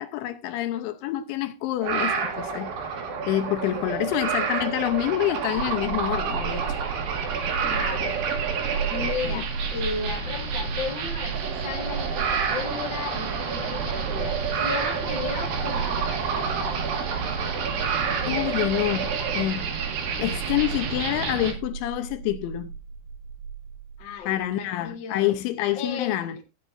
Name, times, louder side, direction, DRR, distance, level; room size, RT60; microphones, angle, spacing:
voice 1, 0.0-2.7 3.3-6.7 9.2-9.4 18.3-19.7 20.2-22.7 24.3-26.4, left 13 dB, 80° left, 3.0 m, -27 dB
sound 1, 1.8-21.5, right 6 dB, 60° right, 3.0 m, -29 dB
sound 2, 5.6-24.4, right 6 dB, 80° right, 2.5 m, -35 dB
voice 2, 7.6-8.2 8.8-16.7 24.0-25.3 25.7-26.4, left 5 dB, 60° left, 1.2 m, -35 dB
15.5 x 9.9 x 2.6 m
omnidirectional pair, 5.6 m